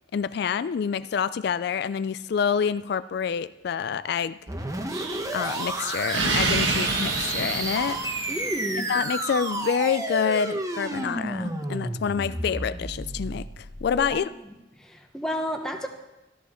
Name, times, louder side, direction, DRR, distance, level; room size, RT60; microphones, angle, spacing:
voice 1, 0.1-4.4 5.3-8.3 8.9-14.3, left 7 dB, 55° left, 15 dB, 0.3 m, -27 dB
sound 1, 4.5-14.1, right 2 dB, 15° right, 1.0 m, -31 dB
Explosion, 4.9-8.8, right 3 dB, 65° right, 1.4 m, -29 dB
voice 2, 8.3-8.9 13.9-14.2 14.8-15.9, equal, 5° left, 3 dB, 1.0 m, -31 dB
13.5 x 13.0 x 4.3 m, 0.98 s
head